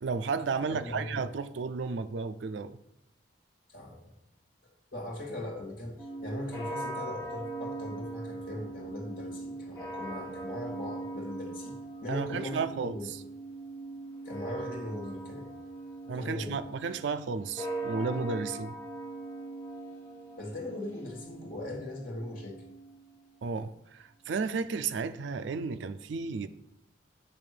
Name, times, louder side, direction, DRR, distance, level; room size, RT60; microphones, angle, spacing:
voice 1, 0.0-2.8 12.1-13.0 16.1-18.8 23.4-26.5, right 5 dB, 70° right, 0.4 m, -33 dB
voice 2, 0.6-1.2 3.7-4.1 4.9-13.1 14.2-15.5 16.0-16.6 20.4-22.6, left 1 dB, 50° left, 2.2 m, -40 dB
sound 1, 6.0-23.3, right 2 dB, 15° left, 1.6 m, -41 dB
8.8 x 3.5 x 6.7 m
head